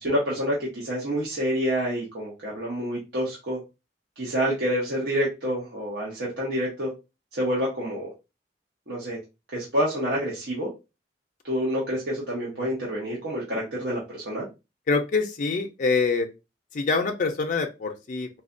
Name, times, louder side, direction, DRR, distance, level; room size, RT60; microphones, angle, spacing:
voice 1, 0.0-3.6 4.2-6.9 7.3-8.1 8.9-9.2 9.5-10.7 11.4-14.5, equal, 65° right, -6 dB, 1.0 m, -28 dB
voice 2, 14.9-16.3 16.7-18.3, left 4 dB, 45° left, 5 dB, 0.4 m, -25 dB
4.1 x 2.2 x 2.5 m, 0.26 s
head